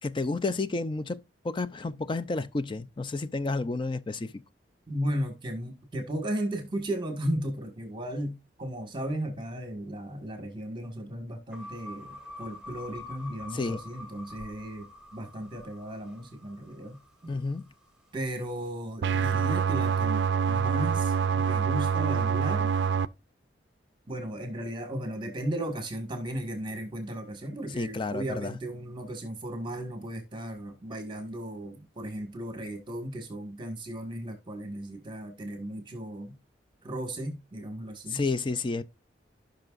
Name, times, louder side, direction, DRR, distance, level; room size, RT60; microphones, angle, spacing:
voice 1, 0.0-1.2 1.4-4.4 13.5-13.8 17.3-17.6 27.7-28.6 38.1-38.8, left 3 dB, 25° left, 0.4 m, -31 dB
voice 2, 4.9-17.3 18.1-22.7 24.1-36.3 36.8-38.2, right 1 dB, 25° right, 1.7 m, -35 dB
sound 1, 11.5-17.9, left 2 dB, 5° right, 2.7 m, -46 dB
sound 2, 19.0-23.1, right 6 dB, 65° right, 0.4 m, -26 dB
15.5 x 5.9 x 2.5 m
head